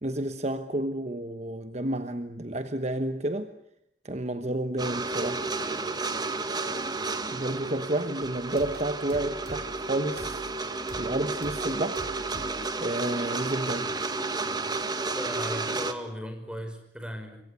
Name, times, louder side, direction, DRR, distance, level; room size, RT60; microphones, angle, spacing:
voice 1, 0.0-3.5 4.0-5.5 7.3-10.5 11.0-12.1 12.8-13.9, right 1 dB, 40° right, 1.2 m, -30 dB
sound 1, 4.8-15.9, right 3 dB, 25° right, 1.6 m, -32 dB
sound 2, 8.6-9.8 10.2-10.6 10.9-12.7 13.0-13.3, right 1 dB, 60° right, 5.4 m, -44 dB
voice 2, 15.1-17.4, equal, 5° right, 5.6 m, -37 dB
27.0 x 24.0 x 8.3 m
head